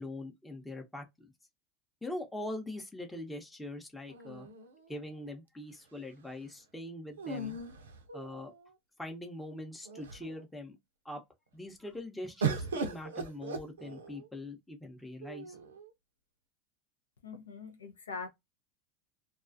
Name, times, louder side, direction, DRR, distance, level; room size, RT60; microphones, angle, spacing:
voice 1, 0.0-1.3 2.0-4.5 4.9-7.6 8.1-8.5 9.0-10.8 11.0-11.2 11.5-15.6, left 1 dB, 10° left, 0.7 m, -42 dB
sound 1, 4.1-5.2 7.2-8.7 9.5-9.6 9.9-10.4 12.4-14.3 15.2-15.9, right 4 dB, 85° right, 0.4 m, -38 dB
voice 2, 17.2-18.3, left 5 dB, 85° left, 0.4 m, -42 dB
2.3 x 2.3 x 2.4 m
hypercardioid pair, 85°, 0 cm